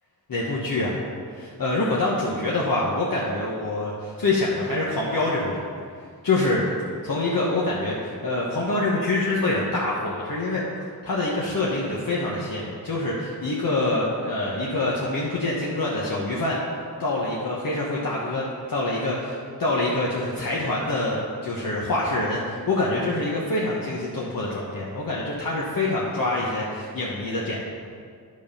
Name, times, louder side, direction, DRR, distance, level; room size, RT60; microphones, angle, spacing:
voice 1, 0.3-1.0 1.3-5.7 6.2-6.6 7.0-10.6 11.0-16.6 17.0-27.6, left 2 dB, 55° left, -5 dB, 1.3 m, -25 dB
9.9 x 5.4 x 5.5 m, 2.2 s
wide cardioid pair, 85°, 40 cm